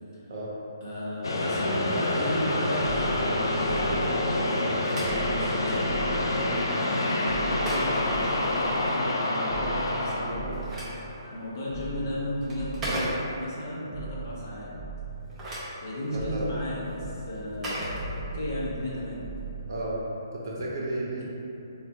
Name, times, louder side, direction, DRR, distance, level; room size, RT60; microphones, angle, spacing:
voice 1, 0.8-2.9 3.2-6.0 6.6-10.6 11.2-14.7 15.8-17.8 18.1-19.2 21.1-21.2, left 1 dB, 50° left, -7 dB, 0.8 m, -35 dB
sound 1, 1.2-11.5, left 1 dB, 90° left, 0.4 m, -27 dB
sound 2, 2.8-4.7 5.0-6.9 7.2-9.1 9.5-11.4 11.7-13.6 13.9-15.8 16.1-20.3 20.6-20.7, right 4 dB, 5° left, 0.9 m, -40 dB
Telephone, 4.5-9.0 10.2-13.6 15.1-18.7, right 1 dB, 10° right, 0.5 m, -38 dB
voice 2, 16.1-16.5 19.7-20.0 20.3-21.2, right 2 dB, 55° right, -5 dB, 0.7 m, -33 dB
3.4 x 2.3 x 2.7 m, 2.9 s
hypercardioid pair, 165°, 2 cm